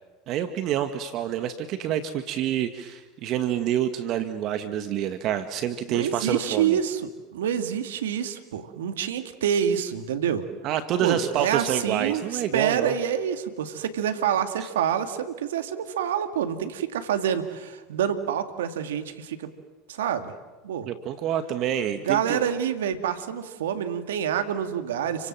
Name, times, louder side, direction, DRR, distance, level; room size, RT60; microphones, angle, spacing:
voice 1, 0.3-6.8 10.6-13.0 14.6-14.7 20.8-22.4, right 10 dB, 55° right, 9 dB, 2.0 m, -27 dB
voice 2, 5.9-7.0 7.3-10.5 11.0-19.5 19.9-20.3 20.6-20.9 22.1-25.3, right 9 dB, 80° right, 9 dB, 2.3 m, -27 dB
30.0 x 25.5 x 7.7 m, 1.2 s
hypercardioid pair, 85°, 0 cm